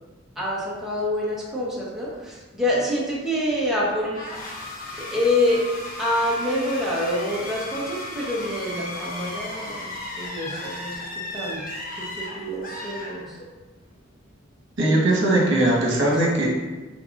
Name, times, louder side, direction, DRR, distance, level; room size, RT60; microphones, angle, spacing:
voice 1, 0.4-4.2 5.0-5.6 6.0-11.6 12.0-13.4, left 1 dB, ahead, -7 dB, 1.0 m, -26 dB
sound 1, 4.1-13.7, left 1 dB, 45° left, 0.8 m, -35 dB
voice 2, 14.8-16.5, right 1 dB, 70° right, -4 dB, 1.2 m, -20 dB
5.4 x 3.8 x 2.5 m, 1.2 s
head